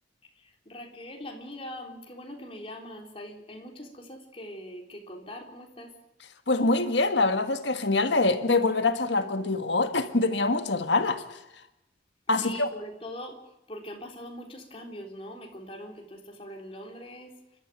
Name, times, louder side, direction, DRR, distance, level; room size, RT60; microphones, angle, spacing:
voice 1, 0.4-5.9 12.4-13.4 13.7-17.6, equal, 30° left, 3.5 m, -42 dB
voice 2, 6.5-11.4 12.3-12.7, left 3 dB, 70° left, 1.6 m, -25 dB
28.5 x 13.0 x 9.1 m
head